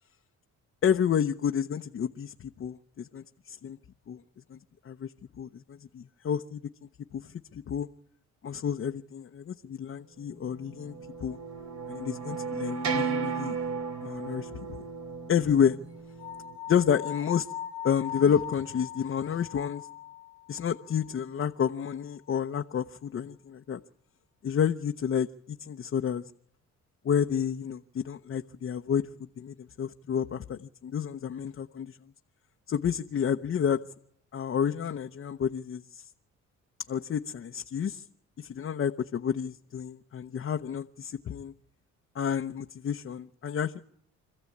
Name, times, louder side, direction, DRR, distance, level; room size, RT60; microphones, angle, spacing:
voice 1, 0.8-3.8 4.1-4.2 4.5-4.6 4.8-5.1 5.4-6.6 7.1-7.9 8.4-11.4 11.9-13.6 14.0-14.5 15.3-15.8 16.7-17.5 17.8-19.9 20.5-23.8 24.4-26.2 27.0-29.0 29.4-32.0 32.7-33.8 34.3-36.0 36.9-38.0 38.4-41.5 42.1-43.8, left 8 dB, 45° left, 5 dB, 0.8 m, -30 dB
sound 1, 10.6-16.6, right 5 dB, 70° right, 2.7 m, -35 dB
sound 2, 16.2-21.3, left 9 dB, 5° right, 1.9 m, -41 dB
26.5 x 14.5 x 8.5 m, 0.73 s
cardioid pair, 90°, 30 cm